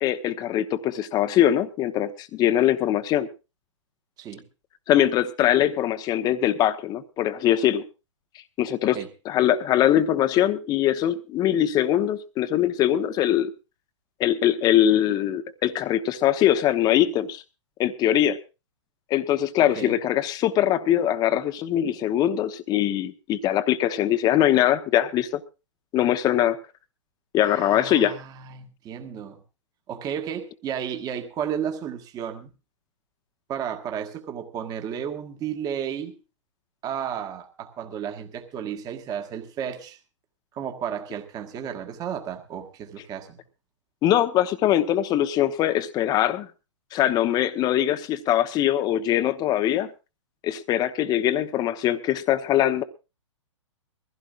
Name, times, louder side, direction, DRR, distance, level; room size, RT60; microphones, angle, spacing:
voice 1, 0.0-3.3 4.9-7.8 8.6-9.0 9.2-13.5 14.2-17.4 17.8-18.4 19.1-25.3 25.9-26.6 27.3-28.2 44.0-46.5 46.9-49.9 50.4-52.8, left 11 dB, 25° left, 1.0 m, -22 dB
voice 2, 27.4-29.4 29.9-32.5 33.5-36.2 36.8-40.0 40.5-43.4, right 8 dB, 25° right, 1.7 m, -33 dB
22.0 x 15.5 x 2.5 m
hypercardioid pair, 125°, 16 cm